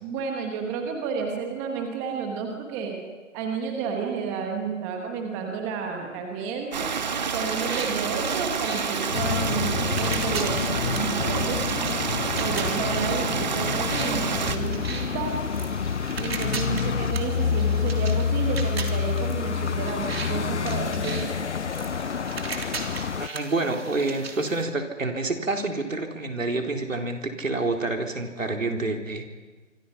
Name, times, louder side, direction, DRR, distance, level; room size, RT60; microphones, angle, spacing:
voice 1, 0.0-3.0 3.3-6.9 7.3-11.6 12.4-15.3 16.2-21.2, right 6 dB, 5° right, 3 dB, 1.1 m, -31 dB
Stream, 6.7-14.6, right 5 dB, 35° right, 1.5 m, -28 dB
sound 1, 7.6-24.6, right 4 dB, 50° right, 3.4 m, -38 dB
sound 2, 9.1-23.3, left 6 dB, 60° left, 0.8 m, -28 dB
voice 2, 23.2-29.2, right 2 dB, 75° right, 4 dB, 3.9 m, -28 dB
26.0 x 25.5 x 5.8 m, 1.4 s
figure-of-eight pair, 155°, 39 cm